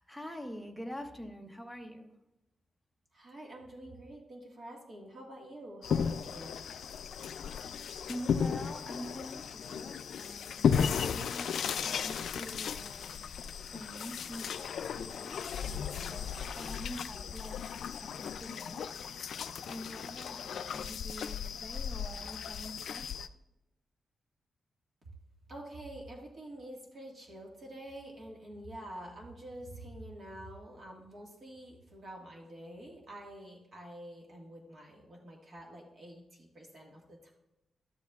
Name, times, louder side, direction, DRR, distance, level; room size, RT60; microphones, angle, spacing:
voice 1, 0.0-2.1 8.1-13.2 13.6-18.9 19.7-23.1, equal, 5° right, 4 dB, 0.8 m, -46 dB
voice 2, 3.1-6.6 25.5-37.3, right 1 dB, 45° right, -1 dB, 1.6 m, -47 dB
sound 1, 5.8-23.3, left 7 dB, 75° left, 0.3 m, -35 dB
13.0 x 10.5 x 2.4 m, 0.93 s
wide cardioid pair, 150°, 0 cm